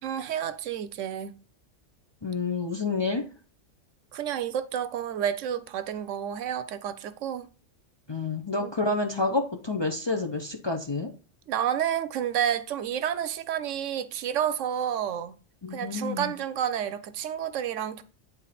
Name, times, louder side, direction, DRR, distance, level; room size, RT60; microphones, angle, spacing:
voice 1, 0.0-1.4 4.1-7.5 8.6-8.7 11.5-15.4 15.7-18.0, right 9 dB, 85° right, 1.0 m, -30 dB
voice 2, 2.2-3.3 8.1-11.1 15.6-16.3, left 3 dB, 30° left, 0.5 m, -29 dB
8.9 x 3.6 x 4.2 m
omnidirectional pair, 1.3 m